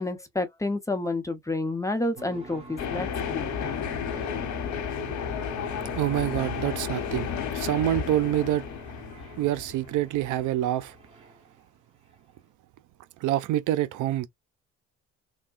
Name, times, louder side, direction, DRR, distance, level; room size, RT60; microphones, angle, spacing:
voice 1, 0.0-3.5, left 2 dB, 10° left, 0.8 m, -29 dB
sound 1, 2.2-11.7, right 5 dB, 20° right, 1.5 m, -46 dB
sound 2, 2.8-10.4, left 7 dB, 70° left, 1.0 m, -32 dB
voice 2, 6.0-8.6 9.4-11.0 13.2-14.3, right 13 dB, 85° right, 0.5 m, -26 dB
3.4 x 2.2 x 2.5 m
cardioid pair, 90°, 30 cm